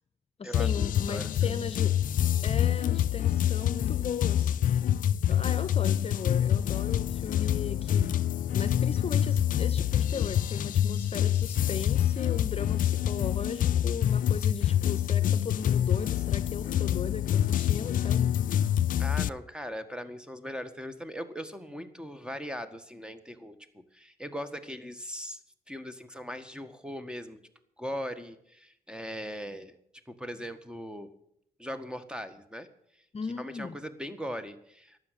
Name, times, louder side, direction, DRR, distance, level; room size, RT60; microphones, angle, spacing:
voice 1, 0.4-1.9 2.4-4.6 5.3-18.3 33.1-33.8, left 5 dB, 40° left, 13 dB, 0.9 m, -37 dB
sound 1, 0.5-19.3, left 10 dB, 60° left, 0.4 m, -26 dB
voice 2, 1.1-1.5 19.0-25.4 25.7-27.4 27.8-29.8 30.1-31.1 31.6-32.7 32.9-33.0 33.3-35.0, equal, 5° right, 11 dB, 1.6 m, -39 dB
12.0 x 8.0 x 9.9 m, 0.73 s
supercardioid pair, 50°, 16 cm